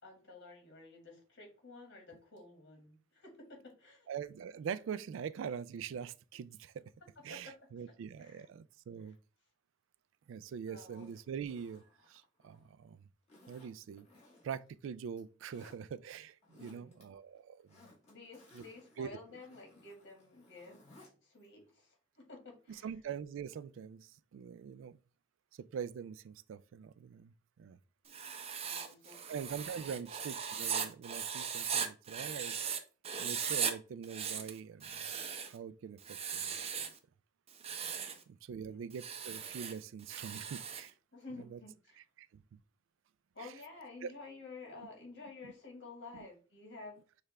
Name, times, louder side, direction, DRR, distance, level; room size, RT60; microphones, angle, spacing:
voice 1, 0.0-4.1 7.3-7.5 8.2-8.5 9.0-9.1 10.7-11.1 16.6-17.1 18.1-22.9 28.6-29.9 38.0-38.3 38.6-38.8 41.1-42.0 43.3-47.0, left 3 dB, 60° left, 1.9 m, -52 dB
voice 2, 4.1-6.8 7.2-9.2 10.3-13.1 13.5-14.1 14.4-17.8 18.5-18.6 19.0-19.2 22.7-25.0 25.6-27.8 29.0-32.6 33.2-35.0 35.5-36.5 38.3-40.9 41.5-41.6 42.2-42.4 43.4-43.5 44.0-44.1 45.4-45.5 46.1-46.3, right 7 dB, 70° right, 0.3 m, -44 dB
Zipper (clothing), 10.8-12.7 13.3-14.7 15.0-15.8 16.3-17.0 17.3-21.1 21.4-21.5, left 2 dB, 35° left, 1.9 m, -62 dB
Writing, 28.1-32.8 33.0-33.7 34.0-35.6 36.0-37.0 37.5-38.2 38.9-40.9, right 7 dB, 30° right, 0.6 m, -38 dB
6.5 x 2.4 x 3.2 m
head